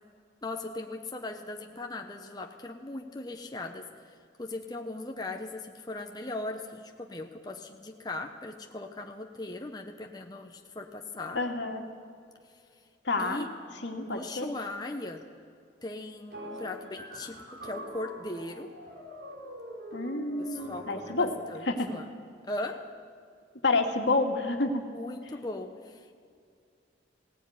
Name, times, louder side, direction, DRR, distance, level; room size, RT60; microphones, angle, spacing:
voice 1, 0.4-11.4 13.2-13.5 14.1-15.2 15.8-18.7 20.4-22.1 22.4-23.0 24.9-26.1, left 2 dB, 20° left, 3 dB, 1.0 m, -39 dB
voice 2, 11.3-11.8 13.0-13.4 13.8-14.5 19.9-21.3 21.6-21.9 23.6-24.9, left 3 dB, 80° left, 3 dB, 2.1 m, -29 dB
sound 1, 16.3-21.5, equal, 60° right, 4.8 m, -44 dB
18.0 x 18.0 x 9.5 m, 2.3 s
head